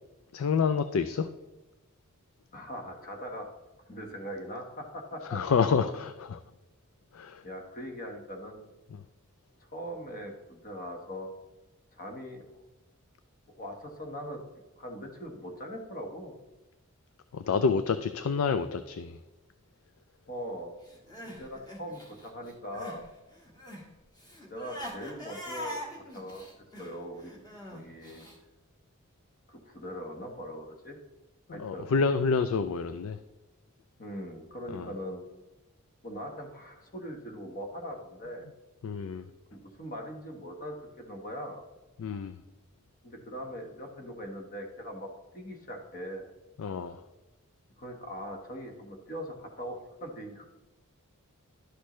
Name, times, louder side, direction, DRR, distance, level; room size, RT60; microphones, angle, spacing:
voice 1, 0.3-1.3 5.3-6.4 7.1-7.4 17.3-19.1 31.6-33.2 34.7-34.9 38.8-39.2 42.0-42.3 46.6-47.0, left 5 dB, 65° left, 11 dB, 0.4 m, -28 dB
voice 2, 2.5-3.5 3.9-5.4 7.4-8.7 9.7-11.3 11.9-12.4 13.6-14.4 14.7-16.3 20.3-20.8 21.2-23.1 24.5-25.8 26.1-26.5 26.8-27.3 27.7-28.3 29.5-31.0 31.5-31.9 34.0-35.2 36.0-38.5 39.5-41.6 43.0-46.3 47.8-50.5, equal, 40° left, 3 dB, 1.3 m, -41 dB
Crying sobbing, 20.9-23.0 23.3-28.4, left 1 dB, 20° left, 1.5 m, -43 dB
11.5 x 6.5 x 3.1 m, 1.1 s
head